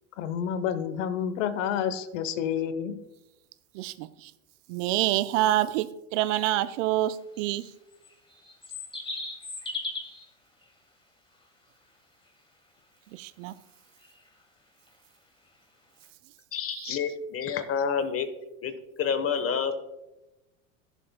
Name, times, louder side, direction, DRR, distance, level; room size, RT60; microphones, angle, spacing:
voice 1, 0.2-3.0, left 8 dB, 65° left, 13 dB, 1.0 m, -29 dB
voice 2, 3.7-4.3 4.7-7.6 13.1-13.5 16.7-16.9, right 14 dB, 65° right, 14 dB, 0.7 m, -27 dB
sound 1, 6.5-6.6 7.4-10.3 14.0-14.2 14.9-15.0 16.0-16.1, left 2 dB, 10° left, 1.9 m, -37 dB
voice 3, 16.5-18.3 18.6-19.7, left 6 dB, 35° left, 10 dB, 1.1 m, -29 dB
15.5 x 7.2 x 2.2 m, 0.97 s
hypercardioid pair, 95°, 41 cm